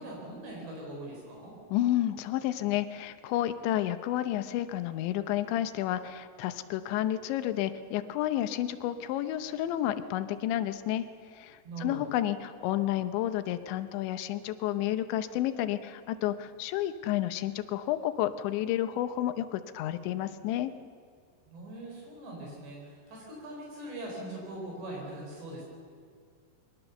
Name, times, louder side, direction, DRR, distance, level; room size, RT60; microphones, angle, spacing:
voice 1, 0.0-1.5 11.6-12.1 21.5-25.6, right 1 dB, 65° right, -2 dB, 6.4 m, -41 dB
voice 2, 1.7-11.0 11.4-20.7, left 13 dB, 80° left, 11 dB, 3.1 m, -31 dB
22.5 x 20.0 x 7.1 m, 2.1 s
omnidirectional pair, 5.3 m